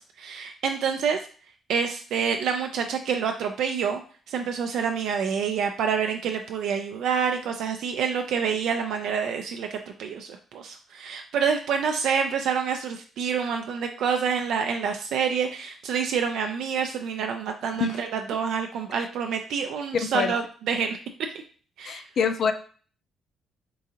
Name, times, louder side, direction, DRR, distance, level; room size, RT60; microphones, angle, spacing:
voice 1, 0.2-1.2 1.7-4.0 4.3-21.0 21.8-22.0, right 6 dB, 80° right, 4 dB, 0.3 m, -27 dB
voice 2, 20.0-20.4 21.8-22.5, left 6 dB, 55° left, 7 dB, 0.4 m, -26 dB
3.7 x 2.5 x 2.8 m, 0.41 s
cardioid pair, 90°, 0 cm